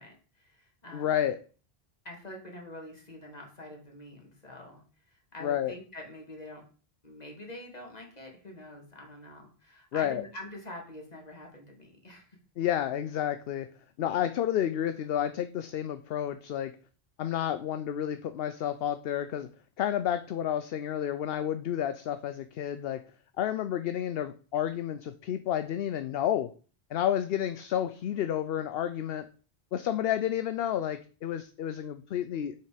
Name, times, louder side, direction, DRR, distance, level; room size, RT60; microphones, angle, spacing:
voice 1, 0.0-1.2 2.0-6.6 7.0-12.4, left 1 dB, 40° left, 0 dB, 2.5 m, -46 dB
voice 2, 0.9-1.4 5.4-5.7 9.9-10.2 12.6-13.7 14.0-16.7 17.2-19.5 19.8-23.0 23.4-26.5 26.9-29.3 29.7-32.5, left 10 dB, 70° left, 10 dB, 0.8 m, -30 dB
7.5 x 5.9 x 5.0 m, 0.39 s
omnidirectional pair, 1.1 m